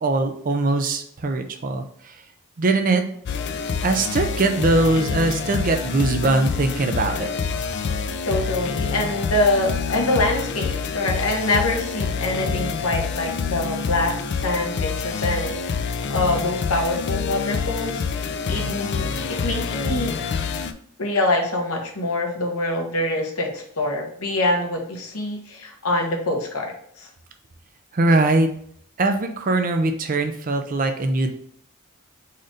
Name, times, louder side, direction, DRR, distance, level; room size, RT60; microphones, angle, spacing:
voice 1, 0.0-1.8 2.6-3.0 3.8-7.3 27.9-28.5 29.0-31.3, right 2 dB, 40° right, 6 dB, 0.4 m, -21 dB
sound 1, 3.3-20.7, left 5 dB, 50° left, 0.3 m, -27 dB
voice 2, 8.2-15.7 16.1-19.1 19.4-20.1 21.0-27.1, left 2 dB, 80° left, 2 dB, 1.0 m, -25 dB
4.2 x 2.5 x 4.8 m, 0.63 s
head